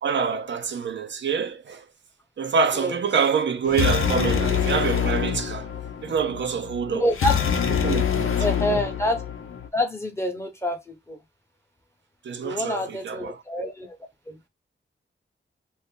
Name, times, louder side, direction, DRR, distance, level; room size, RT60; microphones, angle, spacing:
voice 1, 0.0-1.8 2.4-5.7 6.0-7.0 7.8-8.8 12.2-13.4, right 6 dB, 65° right, 0.4 m, -26 dB
sound 1, 3.6-9.7, left 8 dB, 85° left, 0.7 m, -25 dB
voice 2, 6.9-7.4 8.4-9.2 9.7-11.2 12.4-14.0 14.3-14.4, left 1 dB, 15° left, 0.8 m, -27 dB
2.6 x 2.6 x 3.6 m
wide cardioid pair, 135°, 21 cm